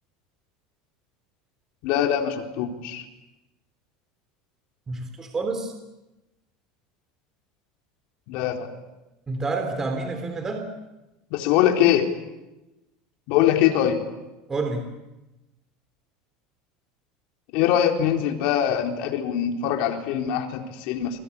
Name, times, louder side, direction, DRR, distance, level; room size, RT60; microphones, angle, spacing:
voice 1, 1.8-3.1 8.3-8.7 11.3-12.1 13.3-14.0 17.5-21.2, left 10 dB, 65° left, 4 dB, 4.1 m, -23 dB
voice 2, 4.9-5.7 9.3-10.7 14.5-14.9, right 3 dB, 20° right, 6 dB, 3.6 m, -28 dB
29.5 x 23.0 x 8.7 m, 1.0 s
supercardioid pair, 130°, 2 cm